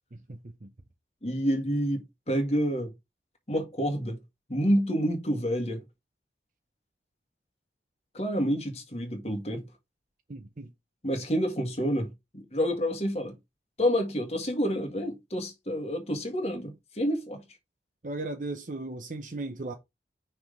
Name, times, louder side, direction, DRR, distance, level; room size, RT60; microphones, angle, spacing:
voice 1, 0.1-0.7 10.3-10.7 18.0-19.7, right 2 dB, 45° right, 0.7 m, -37 dB
voice 2, 1.2-2.9 3.5-4.2 4.5-5.8 8.1-9.7 11.0-13.4 13.8-17.4, equal, 35° left, 1.7 m, -28 dB
6.0 x 3.4 x 5.0 m
head